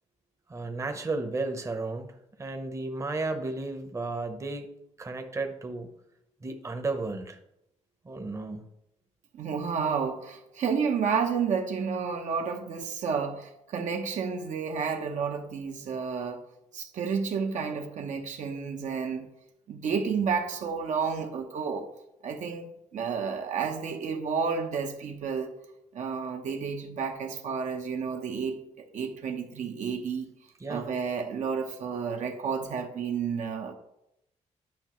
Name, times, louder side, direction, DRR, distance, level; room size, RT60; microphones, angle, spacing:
voice 1, 0.5-2.1 2.4-4.7 5.0-5.9 6.4-7.4 8.0-8.6 30.6-30.8, right 3 dB, 25° right, 6 dB, 0.8 m, -33 dB
voice 2, 9.3-16.4 16.7-19.3 19.7-21.9 22.2-25.5 25.9-30.3 30.7-33.7, right 6 dB, 75° right, 4 dB, 0.9 m, -31 dB
10.5 x 5.5 x 3.0 m, 0.84 s
cardioid pair, 105°, 13 cm